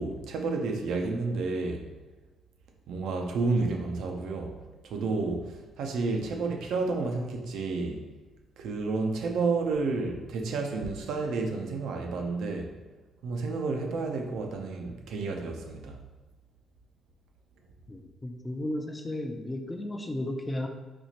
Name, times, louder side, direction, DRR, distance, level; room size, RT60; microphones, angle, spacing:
voice 1, 0.0-1.9 2.9-4.6 4.8-8.0 8.6-12.7 13.2-16.0, right 3 dB, 80° right, 3 dB, 0.5 m, -30 dB
voice 2, 17.9-20.7, left 1 dB, 20° left, 4 dB, 0.4 m, -34 dB
4.3 x 2.4 x 2.8 m, 1.2 s
cardioid pair, 90°, 0 cm